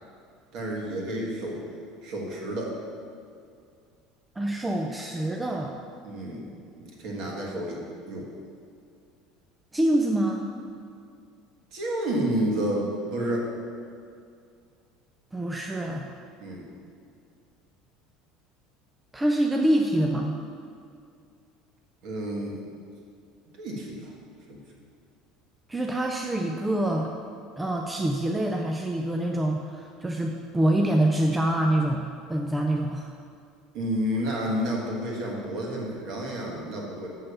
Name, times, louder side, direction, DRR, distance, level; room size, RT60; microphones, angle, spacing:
voice 1, 0.5-1.6 2.0-2.7 6.0-6.5 6.8-7.8 8.1-8.3 11.7-13.5 16.4-16.7 22.0-22.6 23.6-24.1 24.5-24.6 33.7-37.1, right 1 dB, 45° right, -2 dB, 1.7 m, -30 dB
voice 2, 4.4-5.7 9.7-10.5 15.3-16.1 19.1-20.4 25.7-27.1 27.6-33.1, right 1 dB, 10° right, 1 dB, 0.4 m, -25 dB
6.9 x 5.5 x 6.9 m, 2.3 s
cardioid pair, 170°, 0 cm